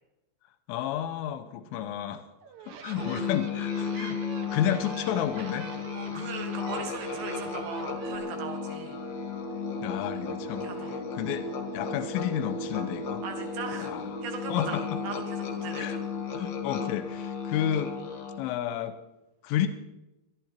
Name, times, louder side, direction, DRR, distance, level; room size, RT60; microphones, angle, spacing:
voice 1, 0.7-2.2 2.7-4.2 4.5-5.7 6.1-6.3 9.8-13.2 13.8-14.1 14.5-14.8 15.8-16.0 16.3-17.9 18.4-18.9 19.4-19.7, left 10 dB, 90° left, 10 dB, 3.4 m, -31 dB
sound 1, 2.4-8.2, right 7 dB, 85° right, 1.6 m, -44 dB
Musical instrument, 3.0-18.5, left 5 dB, 75° left, 1.1 m, -35 dB
voice 2, 3.0-3.3 5.9-9.0 10.5-11.0 13.2-13.9 14.2-16.0, right 5 dB, 65° right, 3 dB, 4.0 m, -39 dB
sound 2, 7.9-17.2, left 1 dB, 25° right, 1.8 m, -43 dB
21.5 x 12.0 x 4.5 m, 0.94 s
omnidirectional pair, 5.5 m